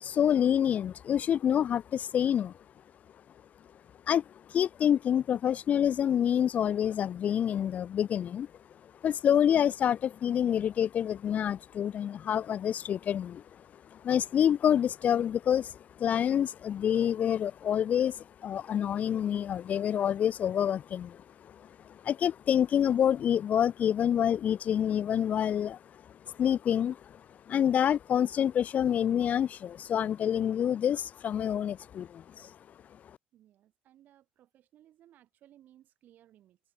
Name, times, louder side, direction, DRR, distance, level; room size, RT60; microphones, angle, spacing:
voice 1, 0.0-2.5 4.1-4.2 4.5-8.5 9.0-13.4 13.9-25.8 26.3-27.2 27.5-32.6, left 9 dB, 50° left, 0.4 m, -27 dB
voice 2, 33.3-36.6, right 12 dB, 65° right, 7.4 m, -61 dB
supercardioid pair, 75°, 3 cm